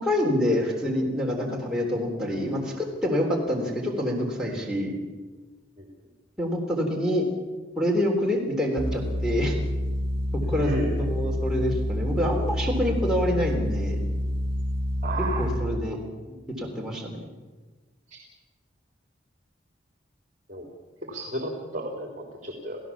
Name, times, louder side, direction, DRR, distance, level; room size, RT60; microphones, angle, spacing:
voice 1, 0.0-5.0 6.4-7.3 7.8-9.5 10.3-10.8 11.1-14.0 15.4-16.0 16.6-17.2, left 1 dB, 5° right, -3 dB, 3.6 m, -26 dB
sound 1, 8.8-15.6, equal, 30° left, 5.6 m, -28 dB
voice 2, 10.4-11.1 15.0-15.5 18.1-18.2 20.5-20.6 21.0-22.8, right 1 dB, 40° right, 1 dB, 3.3 m, -33 dB
29.5 x 16.5 x 7.3 m, 1.3 s
head